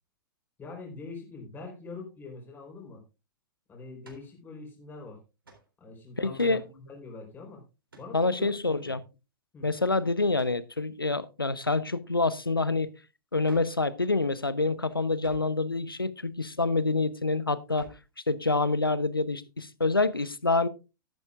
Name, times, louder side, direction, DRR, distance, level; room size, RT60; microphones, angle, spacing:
voice 1, 0.6-3.0 3.7-5.2 5.8-7.7 8.0-8.9 9.5-9.7, left 4 dB, 15° left, 4.0 m, -44 dB
sound 1, 4.0-4.3 5.4-5.7 6.4-6.7 7.9-8.2 10.3-10.7 13.4-13.8 15.2-15.6 17.7-18.1, right 3 dB, 80° right, 4.0 m, -51 dB
voice 2, 6.2-6.6 8.1-9.0 9.6-12.9 13.3-17.9 18.3-20.7, left 3 dB, 90° left, 0.8 m, -27 dB
13.0 x 12.0 x 2.4 m
figure-of-eight pair, 105°, 12 cm